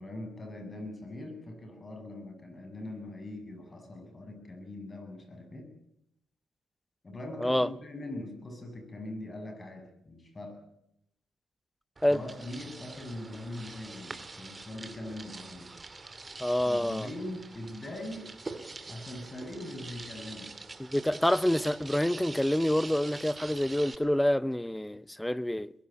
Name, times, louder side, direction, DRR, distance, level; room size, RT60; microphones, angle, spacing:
voice 1, 0.0-5.8 7.0-10.6 12.1-15.7 16.7-18.3 18.9-20.5, left 1 dB, 35° left, 7.4 m, -41 dB
sound 1, 12.0-24.0, right 3 dB, 30° right, 2.4 m, -45 dB
voice 2, 16.4-17.1 20.9-25.7, left 1 dB, 5° left, 0.8 m, -27 dB
21.5 x 16.5 x 9.2 m
hypercardioid pair, 45°, 0 cm